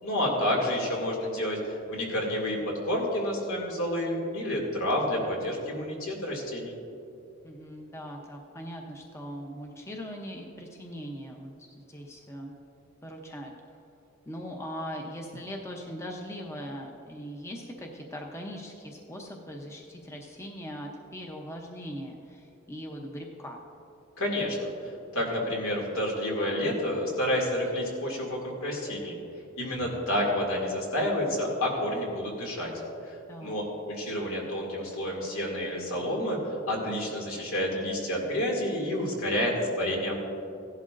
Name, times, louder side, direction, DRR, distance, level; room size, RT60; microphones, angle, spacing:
voice 1, 0.0-6.7 24.2-29.2 29.6-32.7 33.0-40.1, left 1 dB, 80° left, -1 dB, 2.5 m, -29 dB
voice 2, 7.4-12.5 13.0-13.5 14.3-23.6 33.3-33.6, equal, 15° left, 1 dB, 0.7 m, -40 dB
16.5 x 11.5 x 2.6 m, 2.7 s
head